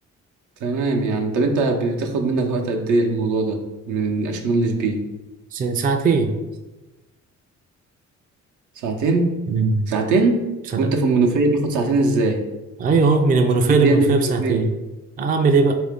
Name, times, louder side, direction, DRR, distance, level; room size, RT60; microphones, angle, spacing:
voice 1, 0.6-3.6 3.9-5.0 8.8-9.3 9.9-10.4 10.8-12.4 13.8-14.1 14.4-14.6, right 3 dB, 75° right, 2 dB, 0.7 m, -20 dB
voice 2, 5.5-6.3 9.5-9.9 10.7-10.9 12.8-14.7 15.2-15.8, right 4 dB, 30° right, 5 dB, 0.4 m, -19 dB
3.7 x 2.5 x 3.5 m, 1.1 s
cardioid pair, 90°, 30 cm